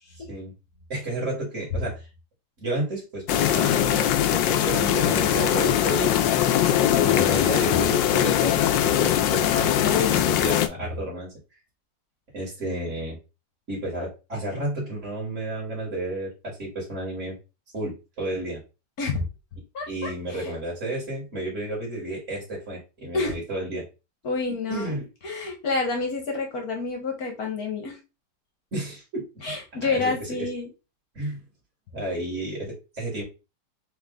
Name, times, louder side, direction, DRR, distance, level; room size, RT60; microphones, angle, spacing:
voice 1, 0.9-2.0 2.6-6.3 6.8-11.3 12.3-13.2 13.7-17.3 17.7-18.6 19.9-23.8 24.7-25.0 28.7-30.5 31.1-31.4 31.9-33.2, right 1 dB, 40° right, -4 dB, 2.3 m, -32 dB
sound 1, 3.3-10.7, left 11 dB, 90° left, 1.3 m, -21 dB
voice 2, 6.9-7.2 9.8-10.2 19.0-19.2 19.7-20.5 23.1-23.4 24.2-28.0 29.4-30.7, left 4 dB, 55° left, 2 dB, 1.6 m, -28 dB
4.1 x 3.1 x 3.8 m, 0.28 s
omnidirectional pair, 1.9 m